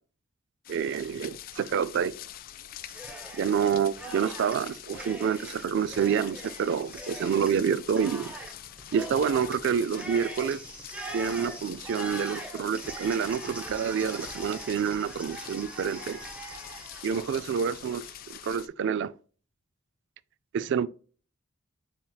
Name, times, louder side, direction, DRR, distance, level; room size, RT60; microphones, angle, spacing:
sound 1, 0.6-18.7, left 12 dB, 45° left, 0.3 m, -45 dB
voice 1, 0.7-2.2 3.3-8.3 8.9-10.6 11.1-16.2 17.0-18.0 18.3-19.1 20.5-20.9, right 7 dB, 60° right, 0.3 m, -28 dB
Cheering, 2.8-3.7 4.0-18.3, right 1 dB, 5° right, 0.7 m, -42 dB
7.1 x 3.0 x 2.2 m
head